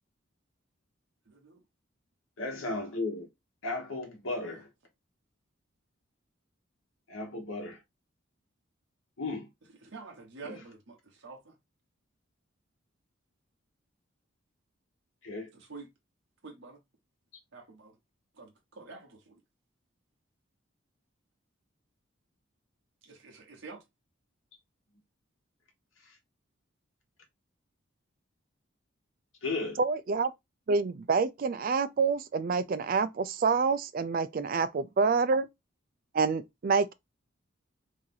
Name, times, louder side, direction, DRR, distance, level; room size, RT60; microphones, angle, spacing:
voice 1, 1.3-1.6 4.5-4.6 9.8-11.5 15.5-15.9 16.4-16.8 17.5-18.0 18.4-19.3 23.0-23.8, right 4 dB, 65° right, 1.0 m, -48 dB
voice 2, 2.4-3.3 3.6-4.7 7.1-7.8 9.2-9.5 10.4-10.6 15.2-15.5 29.4-29.8, left 2 dB, 80° left, 1.2 m, -35 dB
voice 3, 29.8-30.3 30.7-35.5 36.1-36.9, right 4 dB, 45° right, 0.3 m, -27 dB
3.1 x 2.7 x 3.7 m
head